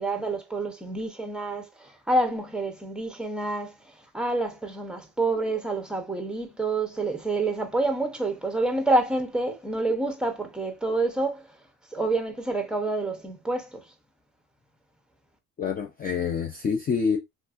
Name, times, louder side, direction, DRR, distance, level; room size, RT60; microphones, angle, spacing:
voice 1, 0.0-3.8 4.1-11.5 11.9-13.8, right 2 dB, 5° right, 0.7 m, -28 dB
voice 2, 15.6-17.2, left 6 dB, 30° left, 0.4 m, -27 dB
3.4 x 2.6 x 2.3 m
cardioid pair, 140°, 31 cm